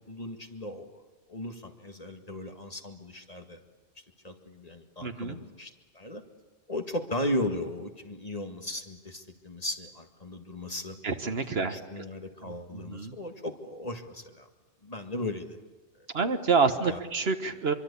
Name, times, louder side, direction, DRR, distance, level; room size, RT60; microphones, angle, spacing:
voice 1, 0.1-1.0 1.3-3.6 4.2-6.2 6.7-11.0 11.5-14.5 14.8-15.6 16.8-17.0, left 1 dB, 35° left, 4 dB, 2.0 m, -36 dB
voice 2, 5.0-5.4 11.0-12.0 12.4-13.2 16.1-17.7, right 5 dB, 65° right, 8 dB, 1.6 m, -28 dB
25.0 x 24.0 x 8.4 m, 1.2 s
omnidirectional pair, 1.1 m